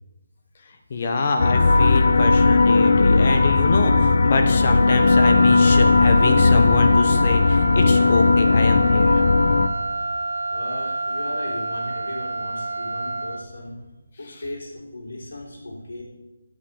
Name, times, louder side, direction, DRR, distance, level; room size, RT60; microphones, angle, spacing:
voice 1, 0.9-9.2, left 3 dB, 25° left, 5 dB, 0.8 m, -24 dB
sound 1, 1.4-9.7, left 3 dB, 50° left, 0.5 m, -17 dB
Wind instrument woodwind instrument, 4.8-13.5, right 2 dB, 85° right, 1.0 m, -28 dB
voice 2, 10.5-13.9 14.2-16.0, left 1 dB, 85° left, -2 dB, 3.6 m, -36 dB
9.1 x 5.8 x 6.9 m, 1.1 s
hypercardioid pair, 180°, 0 cm